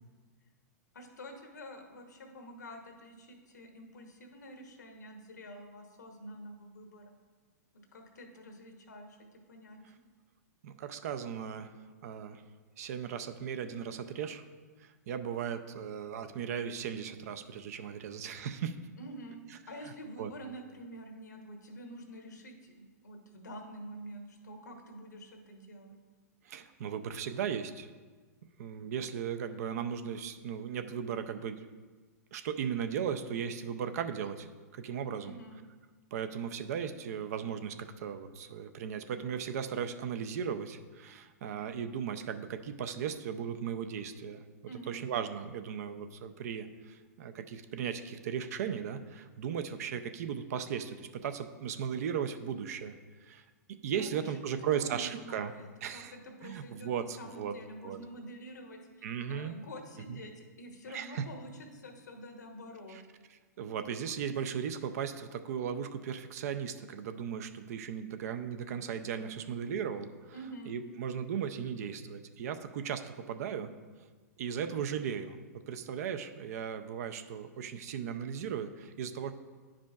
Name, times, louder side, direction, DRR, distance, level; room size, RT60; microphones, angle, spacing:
voice 1, 0.9-7.2 7.9-10.0 19.0-22.7 23.0-26.0 35.2-35.6 44.7-45.1 53.9-63.0 70.3-70.7, equal, 90° left, 3 dB, 1.1 m, -47 dB
voice 2, 10.6-11.7 12.0-12.4 12.8-14.5 14.8-18.8 20.2-20.3 26.4-27.9 28.6-31.7 32.3-34.5 34.7-35.4 36.1-44.5 44.9-53.4 53.8-55.5 55.8-56.1 56.4-57.5 57.8-58.0 59.0-59.5 60.1-60.2 60.9-61.2 62.9-63.0 63.6-70.3 70.7-73.7 74.4-75.4 75.7-79.3, right 8 dB, 60° right, 9 dB, 0.5 m, -37 dB
10.5 x 4.9 x 2.4 m, 1.4 s
hypercardioid pair, 120°, 9 cm